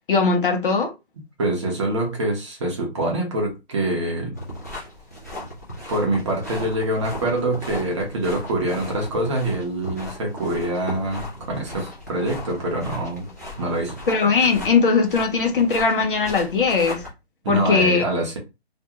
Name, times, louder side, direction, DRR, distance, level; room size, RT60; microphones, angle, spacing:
voice 1, 0.1-0.9 14.1-17.0 17.5-18.0, left 4 dB, 55° left, 0.7 m, -19 dB
voice 2, 1.4-4.3 5.9-13.2 13.6-13.9 17.4-18.4, right 1 dB, 30° right, 0.7 m, -25 dB
sound 1, 4.4-17.1, left 1 dB, 15° left, 0.4 m, -37 dB
2.4 x 2.2 x 2.8 m
figure-of-eight pair, 150°, 32 cm